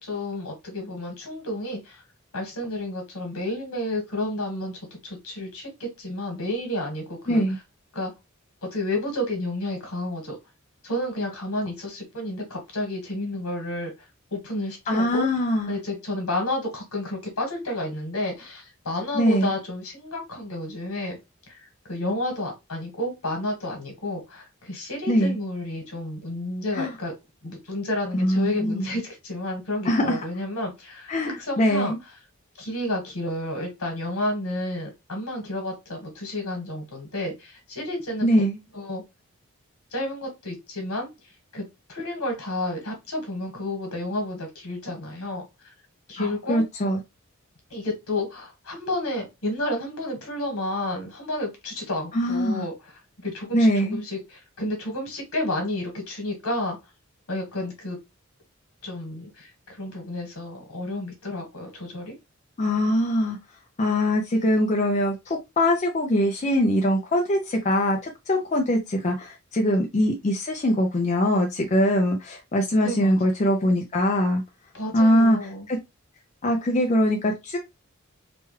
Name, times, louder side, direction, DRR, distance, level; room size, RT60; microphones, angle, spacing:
voice 1, 0.0-2.0 2.3-7.4 7.9-8.1 8.7-10.4 10.8-13.9 14.3-15.3 15.7-21.2 21.5-27.1 27.4-31.9 32.6-38.3 38.7-39.0 39.9-41.1 41.5-45.4 46.1-46.6 47.7-52.7 53.2-56.8 57.3-58.0 58.8-62.1 72.8-73.1 74.7-75.7, left 1 dB, 85° left, 3 dB, 1.3 m, -31 dB
voice 2, 14.9-15.8 19.1-19.5 25.1-25.3 26.7-26.9 28.1-28.9 29.8-30.2 31.1-32.0 38.2-38.6 46.2-47.0 52.1-52.6 53.5-54.0 62.6-63.4 63.8-74.4 74.9-75.4 75.7-75.8 76.4-77.6, equal, 30° left, 1 dB, 0.5 m, -22 dB
3.0 x 2.3 x 3.0 m, 0.22 s
head